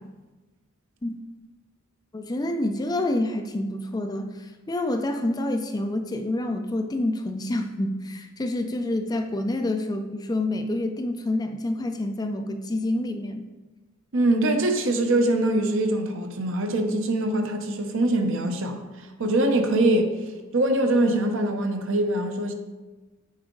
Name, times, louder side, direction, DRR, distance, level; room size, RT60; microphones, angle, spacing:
voice 1, 2.1-13.5, left 1 dB, 15° left, 0.4 m, -28 dB
voice 2, 14.1-20.2 20.5-22.5, right 1 dB, 60° right, 0.8 m, -23 dB
8.6 x 4.8 x 3.8 m
head